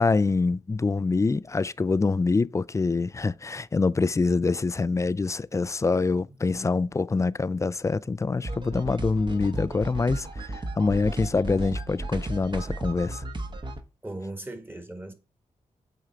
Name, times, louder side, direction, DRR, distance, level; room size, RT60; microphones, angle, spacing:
voice 1, 0.0-13.2, left 3 dB, 20° left, 0.3 m, -25 dB
sound 1, 8.4-13.8, right 2 dB, 30° right, 1.0 m, -34 dB
voice 2, 14.0-15.1, right 1 dB, 15° right, 1.5 m, -37 dB
7.8 x 3.7 x 4.4 m
supercardioid pair, 50°, 15 cm